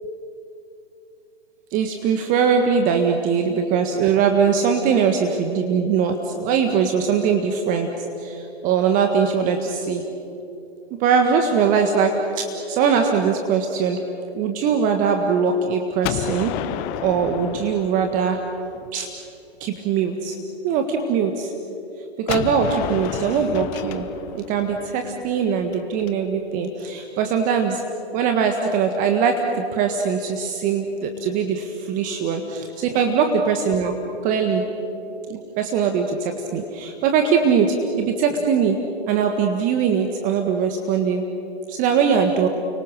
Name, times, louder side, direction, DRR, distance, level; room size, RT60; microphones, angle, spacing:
voice 1, 1.7-10.0 11.0-14.0 14.3-16.6 17.0-18.4 18.9-19.1 19.6-20.4 20.6-21.5 22.2-27.8 28.1-30.8 31.2-34.0 34.2-34.7 35.3-38.8 39.1-41.2 41.7-42.5, right 6 dB, 25° right, 5 dB, 1.7 m, -21 dB
Gunshot gunfire, 16.0-18.9 22.3-26.1, left 12 dB, 25° left, 0.8 m, -31 dB
30.0 x 24.0 x 6.6 m, 2.8 s
figure-of-eight pair, 130°, 33 cm